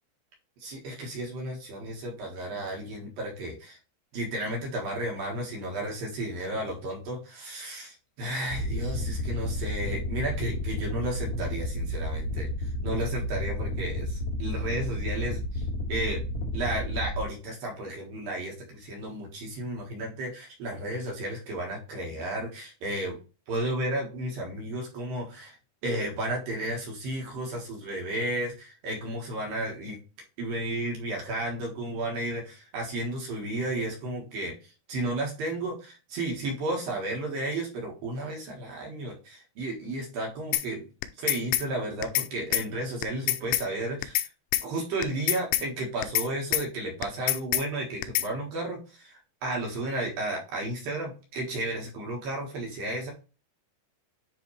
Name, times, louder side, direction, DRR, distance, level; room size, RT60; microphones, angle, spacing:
voice 1, 0.6-3.8 4.1-12.5 12.8-16.2 16.5-23.2 23.5-25.6 25.8-30.0 30.4-34.5 34.9-40.9 41.2-44.2 44.6-53.1, right 1 dB, 60° right, 0 dB, 2.9 m, -33 dB
sound 1, 8.5-17.2, left 1 dB, 60° left, 1.9 m, -31 dB
sound 2, 40.5-40.7 41.0-41.7 42.0-42.3 42.5-42.7 43.0-43.7 44.0-44.3 44.5-44.7 45.0-45.7 46.0-46.3 46.5-46.7 47.0-47.7 48.0-48.3, left 16 dB, 85° left, 3.0 m, -26 dB
10.0 x 3.4 x 3.2 m, 0.33 s
omnidirectional pair, 5.5 m